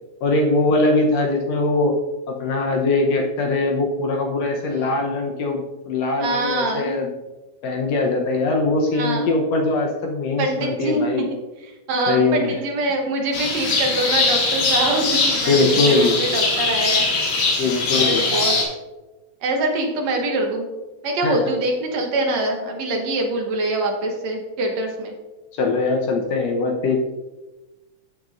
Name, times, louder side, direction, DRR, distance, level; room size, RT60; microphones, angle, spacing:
voice 1, 0.2-1.9 2.3-7.1 7.6-11.3 12.1-12.6 15.5-16.2 17.6-18.2 21.2-21.4 25.5-27.1, left 3 dB, 70° left, 1 dB, 1.9 m, -21 dB
voice 2, 6.2-6.9 8.9-9.3 10.4-11.3 11.9-17.1 17.9-18.6 19.4-20.7 21.0-25.1, right 2 dB, 70° right, 2 dB, 2.3 m, -24 dB
sound 1, 13.3-18.6, left 3 dB, 85° left, 3.4 m, -21 dB
14.0 x 6.0 x 2.6 m, 1.1 s
omnidirectional pair, 3.5 m